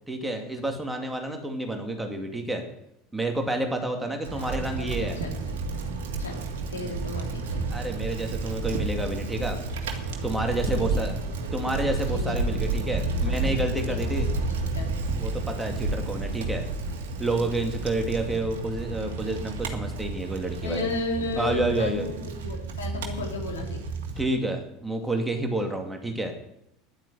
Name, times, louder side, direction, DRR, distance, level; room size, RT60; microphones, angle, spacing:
voice 1, 0.1-2.6 3.1-5.2 7.7-9.6 10.2-11.2 11.5-14.3 15.2-16.6 17.2-20.9 21.4-22.1 24.2-26.3, right 2 dB, 5° right, 3 dB, 2.5 m, -29 dB
voice 2, 4.1-5.6 6.2-6.4 6.7-7.6 10.4-13.4 13.9-14.3 14.6-15.0 20.6-23.8, left 3 dB, 75° left, 0 dB, 3.4 m, -35 dB
Bicycle, 4.2-24.2, right 3 dB, 65° right, 2.0 m, -31 dB
11.0 x 8.9 x 9.3 m, 0.82 s
figure-of-eight pair, 70°, 0 cm